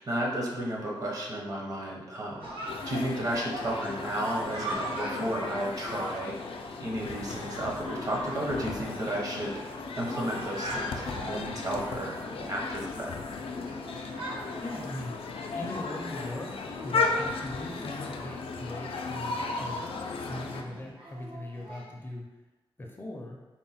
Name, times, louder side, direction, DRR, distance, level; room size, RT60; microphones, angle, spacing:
voice 1, 0.0-2.5 2.8-6.4 6.8-12.2 12.5-13.2, right 1 dB, 40° right, -2 dB, 0.7 m, -33 dB
Chatter, 2.4-22.0, right 1 dB, 80° right, 0.9 m, -43 dB
sound 1, 2.7-20.6, left 4 dB, 90° left, 0.4 m, -35 dB
voice 2, 14.6-15.2 15.5-19.9 20.2-22.4 22.8-23.5, left 1 dB, 25° left, -1 dB, 0.4 m, -40 dB
3.8 x 2.2 x 4.1 m, 1.1 s
wide cardioid pair, 170°, 9 cm